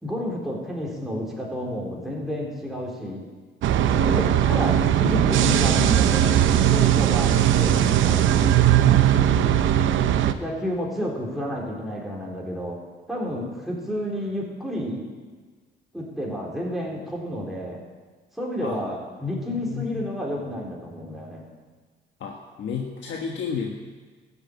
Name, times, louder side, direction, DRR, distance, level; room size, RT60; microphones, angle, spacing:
voice 1, 0.0-3.3 4.0-8.6 10.2-12.8 13.1-15.1 15.9-17.8 18.3-21.5, equal, ahead, -4 dB, 3.8 m, -30 dB
sound 1, 3.6-10.3, right 11 dB, 75° right, 0.7 m, -19 dB
voice 2, 3.9-4.5 9.1-9.7 18.6-18.8 19.5-20.1 22.2-23.7, left 6 dB, 70° left, 1 dB, 1.4 m, -33 dB
13.5 x 8.3 x 8.7 m, 1.4 s
cardioid pair, 90°, 20 cm